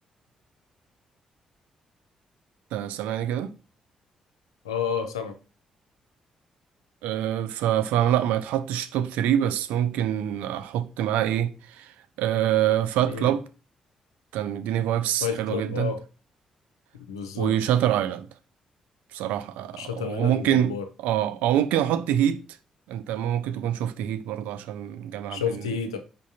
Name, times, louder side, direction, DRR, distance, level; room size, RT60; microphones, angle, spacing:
voice 1, 2.7-3.5 7.0-13.4 14.3-15.9 17.4-18.3 19.1-20.7 21.0-22.4 22.9-25.6, right 11 dB, 70° right, 0.4 m, -25 dB
voice 2, 4.6-5.4 13.1-13.3 15.2-16.0 17.1-17.6 19.8-20.8 25.3-26.0, left 7 dB, 90° left, 0.4 m, -30 dB
5.1 x 3.5 x 2.8 m
hypercardioid pair, 40°, 3 cm